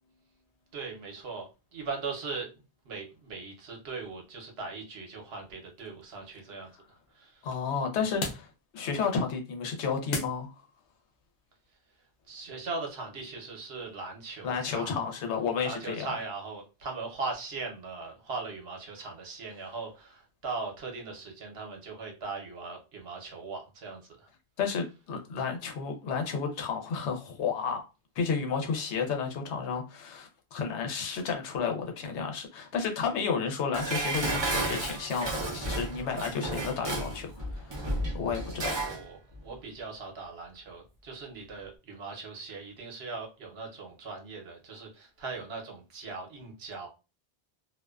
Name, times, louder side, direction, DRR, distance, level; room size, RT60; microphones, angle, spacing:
voice 1, 0.7-2.5 2.8-7.5 12.3-14.9 15.6-24.3 38.8-46.9, right 4 dB, 70° right, 1.0 m, -39 dB
sound 1, 4.9-11.0, left 3 dB, 55° left, 0.5 m, -43 dB
voice 2, 7.4-8.5 8.7-10.5 14.4-16.0 24.6-27.8 28.2-38.7, left 5 dB, 90° left, 0.9 m, -32 dB
Dishes pots and pans, 33.7-39.0 39.4-39.5, right 2 dB, 40° right, 0.4 m, -32 dB
2.4 x 2.2 x 2.3 m
omnidirectional pair, 1.1 m